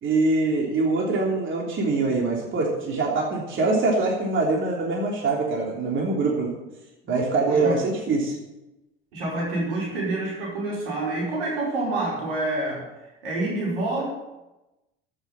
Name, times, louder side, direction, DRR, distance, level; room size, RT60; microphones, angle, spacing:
voice 1, 0.0-6.5 7.1-8.3, right 3 dB, 45° right, -2 dB, 3.4 m, -24 dB
voice 2, 7.4-7.8 9.1-12.9 13.2-14.1, right 2 dB, 75° right, -3 dB, 4.8 m, -27 dB
14.5 x 7.2 x 7.5 m, 0.99 s
hypercardioid pair, 65°, 29 cm